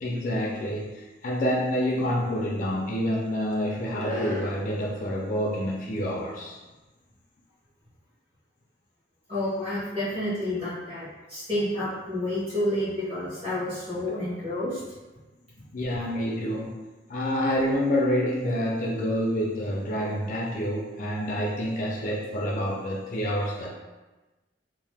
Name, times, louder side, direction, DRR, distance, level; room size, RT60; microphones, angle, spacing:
voice 1, 0.0-6.6 15.7-16.7 17.1-23.7, equal, 40° left, -3 dB, 0.4 m, -27 dB
voice 2, 9.3-14.8, left 1 dB, 30° right, -10 dB, 1.2 m, -29 dB
2.7 x 2.0 x 3.3 m, 1.2 s
head